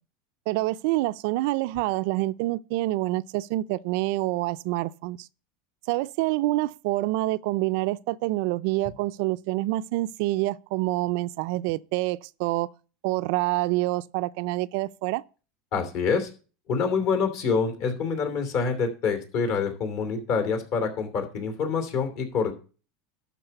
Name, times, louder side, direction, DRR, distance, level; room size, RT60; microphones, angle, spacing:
voice 1, 0.5-5.3 5.9-12.7 13.0-15.2, right 18 dB, 60° right, 0.4 m, -27 dB
voice 2, 15.7-16.3 16.7-22.5, left 5 dB, 55° left, 2.9 m, -26 dB
12.0 x 4.7 x 6.7 m
supercardioid pair, 150°, 0 cm